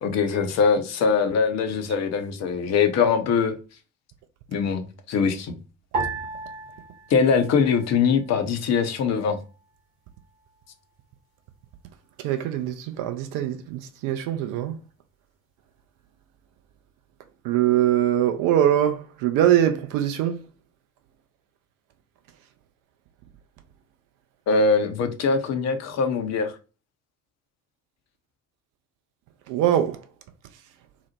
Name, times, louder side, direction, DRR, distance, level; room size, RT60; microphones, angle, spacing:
voice 1, 0.0-3.5 4.5-5.6 7.1-9.4 24.5-26.5, left 5 dB, 40° left, 0.5 m, -22 dB
sound 1, 5.9-8.5 8.7-9.6 10.2-10.7, right 3 dB, 70° right, 0.9 m, -35 dB
voice 2, 12.2-14.8 17.4-20.4 29.5-30.0, right 11 dB, 50° right, 0.5 m, -22 dB
2.8 x 2.0 x 2.7 m
figure-of-eight pair, 45°, 42 cm